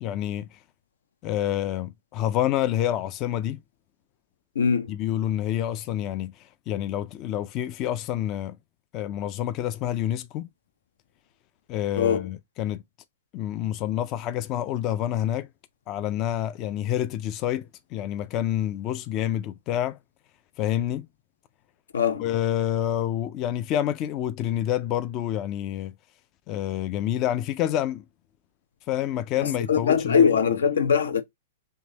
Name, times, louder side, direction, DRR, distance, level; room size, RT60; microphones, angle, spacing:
voice 1, 0.0-0.6 1.2-3.6 4.9-8.6 8.9-10.5 11.7-12.8 13.3-15.5 15.9-20.0 20.6-21.1 22.2-25.9 26.5-28.0 28.9-30.2, left 11 dB, 35° left, 0.4 m, -28 dB
voice 2, 4.5-4.9 12.0-12.3 21.9-22.3 29.4-31.2, left 6 dB, 85° left, 0.7 m, -22 dB
3.6 x 2.7 x 3.8 m
hypercardioid pair, 130°, 0 cm